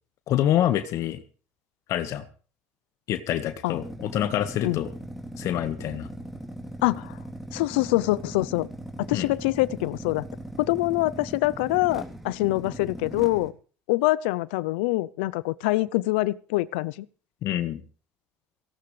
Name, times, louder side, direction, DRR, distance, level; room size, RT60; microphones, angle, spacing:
voice 1, 0.3-1.2 1.9-2.2 3.1-4.9 5.4-6.1 9.1-9.3 17.4-17.8, left 11 dB, 60° left, 11 dB, 1.5 m, -26 dB
sound 1, 3.7-13.5, right 1 dB, 5° right, 3.3 m, -39 dB
voice 2, 6.8-7.2 7.5-8.7 9.0-10.2 10.6-13.5 13.9-17.1, left 19 dB, 80° left, 20 dB, 0.6 m, -25 dB
18.0 x 17.5 x 3.3 m, 0.39 s
hypercardioid pair, 75°, 6 cm